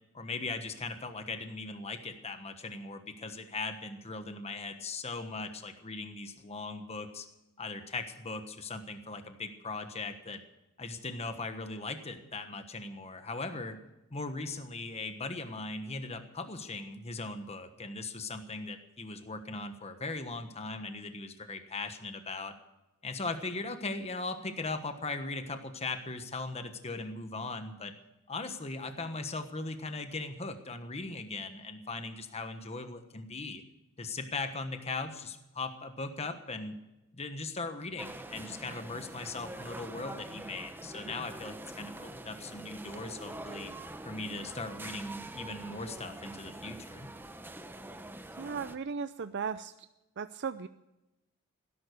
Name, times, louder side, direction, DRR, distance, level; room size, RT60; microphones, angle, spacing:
voice 1, 0.1-7.3 7.6-10.4 10.8-13.8 14.1-22.5 23.0-27.9 28.3-33.6 34.0-36.7 37.1-43.7 44.0-47.1, left 3 dB, 30° left, 8 dB, 1.3 m, -39 dB
sound 1, 38.0-48.8, right 1 dB, 10° right, 0.8 m, -45 dB
voice 2, 48.3-49.9 50.2-50.7, right 5 dB, 50° right, 11 dB, 0.5 m, -36 dB
17.0 x 11.5 x 6.7 m, 0.98 s
head